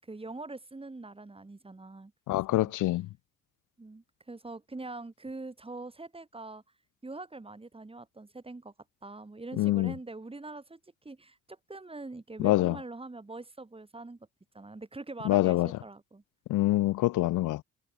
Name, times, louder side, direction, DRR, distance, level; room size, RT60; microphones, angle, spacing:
voice 1, 0.0-2.7 3.8-6.6 7.0-8.7 9.0-10.8 11.0-14.2 14.5-16.2, right 2 dB, 20° right, 6.4 m, -43 dB
voice 2, 2.3-3.1 9.6-9.9 12.4-12.8 15.2-15.7 16.5-17.6, left 16 dB, 85° left, 1.2 m, -25 dB
cardioid pair, 90°, 30 cm